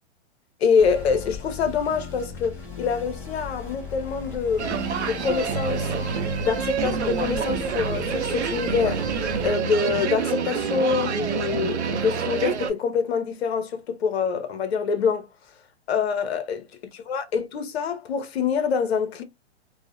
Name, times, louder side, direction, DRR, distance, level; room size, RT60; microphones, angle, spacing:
voice 1, 0.6-6.0 6.4-9.0 9.4-15.3 15.9-16.7 16.9-19.2, left 6 dB, 65° left, 0.7 m, -25 dB
sound 1, 0.8-9.5, left 6 dB, 10° left, 0.5 m, -38 dB
sound 2, 4.6-12.7, right 6 dB, 85° right, 0.6 m, -27 dB
2.3 x 2.1 x 2.5 m
hypercardioid pair, 130°, 33 cm